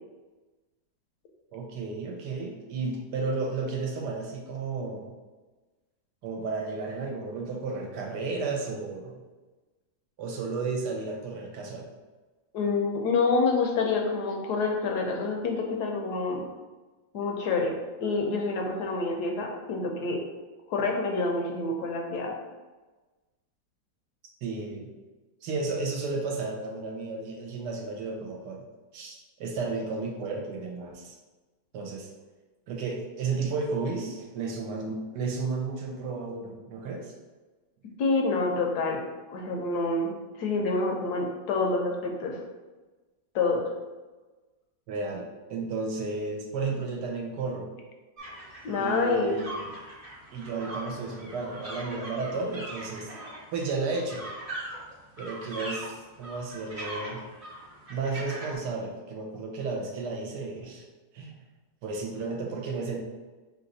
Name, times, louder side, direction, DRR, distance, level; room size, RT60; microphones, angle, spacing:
voice 1, 1.5-5.1 6.2-9.2 10.2-11.9 24.4-24.9 25.4-28.6 28.9-31.2 31.7-32.1 32.7-37.1 44.9-47.7 48.8-49.7 50.3-53.1 53.5-54.2 55.2-57.2 57.9-60.8 61.1-61.4 61.8-63.0, right 4 dB, 80° right, 0 dB, 1.3 m, -33 dB
voice 2, 12.5-16.4 17.1-17.7 18.0-20.2 20.7-22.3 38.0-39.0 39.3-42.4 43.3-43.6 48.6-49.4, left 3 dB, 75° left, 1 dB, 1.1 m, -27 dB
sound 1, 48.2-58.6, right 1 dB, 35° right, 0.6 m, -41 dB
3.3 x 2.9 x 3.9 m, 1.2 s
omnidirectional pair, 1.9 m